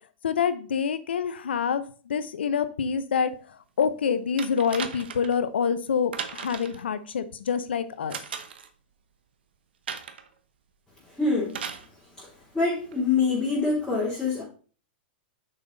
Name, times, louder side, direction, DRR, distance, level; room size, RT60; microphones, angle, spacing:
voice 1, 0.2-8.2, left 6 dB, 80° left, 13 dB, 0.8 m, -27 dB
sound 1, 4.4-5.4 6.1-6.8 8.1-8.7 9.9-10.3 11.5-11.9 12.9-13.0, right 7 dB, 75° right, 1.0 m, -36 dB
voice 2, 11.2-11.6 12.2-12.3 12.5-14.4, left 4 dB, 5° left, -8 dB, 3.2 m, -25 dB
6.6 x 5.6 x 4.0 m, 0.40 s
hypercardioid pair, 110°, 6 cm